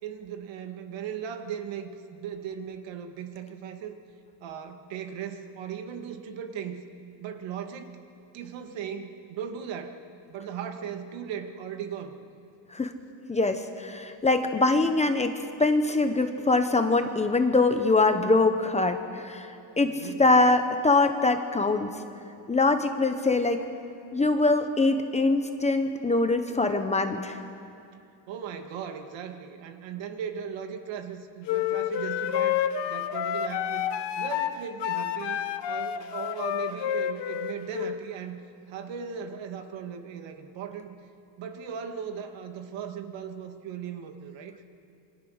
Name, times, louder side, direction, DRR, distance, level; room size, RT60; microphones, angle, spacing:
voice 1, 0.0-4.0 4.4-6.8 7.2-8.0 8.3-10.0 10.3-12.2 19.8-20.2 28.3-33.9 34.2-38.4 38.7-40.9 41.4-44.6, right 8 dB, 70° right, 6 dB, 2.0 m, -38 dB
voice 2, 13.3-19.5 19.8-21.9 22.5-23.6 24.1-27.4, left 3 dB, 15° left, 7 dB, 0.9 m, -23 dB
sound 1, 31.5-38.0, left 10 dB, 60° left, 1.1 m, -29 dB
27.5 x 24.5 x 6.5 m, 2.5 s
cardioid pair, 175°, 47 cm